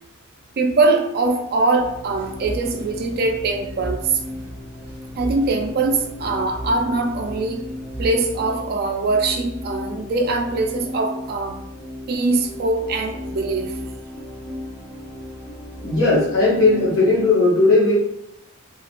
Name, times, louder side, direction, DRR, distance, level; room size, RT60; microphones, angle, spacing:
voice 1, 0.6-4.1 5.2-7.6 8.0-11.6 12.1-13.7, right 3 dB, 45° right, 5 dB, 0.3 m, -22 dB
sound 1, 1.8-8.4, equal, 20° right, 0.9 m, -36 dB
sound 2, 2.3-17.3, left 1 dB, 20° left, 0.9 m, -36 dB
voice 2, 15.8-18.0, left 2 dB, 55° left, -8 dB, 0.7 m, -17 dB
3.1 x 2.4 x 2.5 m, 0.83 s
head